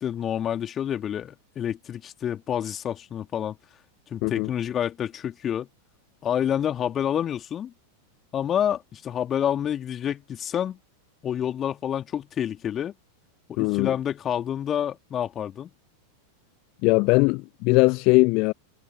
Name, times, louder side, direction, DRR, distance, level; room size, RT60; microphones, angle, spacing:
voice 1, 0.0-3.5 4.1-5.7 6.2-7.7 8.3-10.8 11.2-12.9 13.5-15.7, left 9 dB, 25° left, 2.7 m, -28 dB
voice 2, 13.6-13.9 16.8-18.5, left 28 dB, 45° left, 0.9 m, -20 dB
figure-of-eight pair, 90°, 0 cm